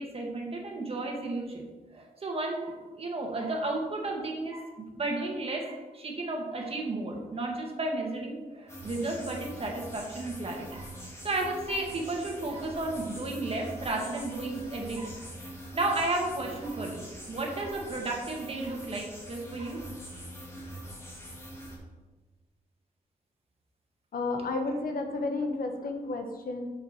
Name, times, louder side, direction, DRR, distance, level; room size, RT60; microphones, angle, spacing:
voice 1, 0.0-1.7 1.9-15.2 15.4-19.8, right 2 dB, 40° right, 1 dB, 1.8 m, -33 dB
sound 1, 8.7-21.8, equal, 20° left, 2.3 m, -44 dB
voice 2, 24.1-26.7, left 3 dB, 85° left, 5 dB, 1.2 m, -32 dB
6.1 x 5.9 x 7.2 m, 1.3 s
wide cardioid pair, 130°, 15 cm